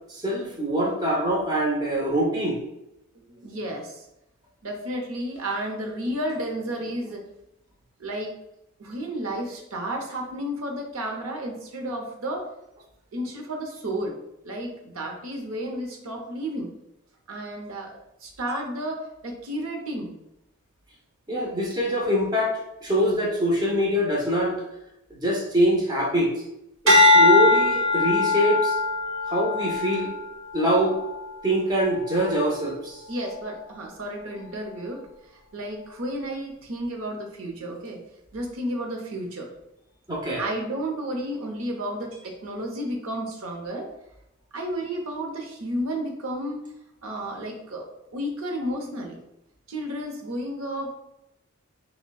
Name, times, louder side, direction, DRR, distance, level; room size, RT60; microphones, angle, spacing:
voice 1, 0.1-2.6 21.3-24.6 25.1-26.3 26.8-28.7 29.3-30.1 30.5-31.0 31.4-33.0 40.1-40.4, equal, 20° right, -3 dB, 0.7 m, -24 dB
voice 2, 3.3-4.1 4.6-7.2 8.0-8.3 8.8-12.4 13.1-14.2 14.4-16.7 17.3-17.9 18.2-20.1 33.1-35.0 35.3-38.0 38.3-39.5 40.4-43.9 44.5-46.6 47.0-49.2 49.7-50.9, right 1 dB, 90° right, 1 dB, 0.7 m, -32 dB
sound 1, 26.9-31.3 31.9-32.3, left 2 dB, 65° right, 1.1 m, -21 dB
5.9 x 2.2 x 2.2 m, 0.84 s
head